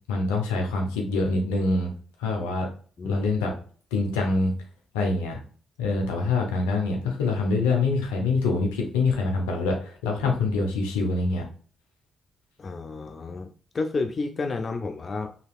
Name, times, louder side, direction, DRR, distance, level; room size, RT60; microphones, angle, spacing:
voice 1, 0.1-1.9 2.2-2.7 3.0-3.5 3.9-4.5 4.9-5.4 5.8-11.4, left 3 dB, 85° left, 1 dB, 0.7 m, -25 dB
voice 2, 12.6-15.3, left 3 dB, 45° left, 6 dB, 0.3 m, -31 dB
2.9 x 2.7 x 2.4 m, 0.43 s
hypercardioid pair, 45°, 0 cm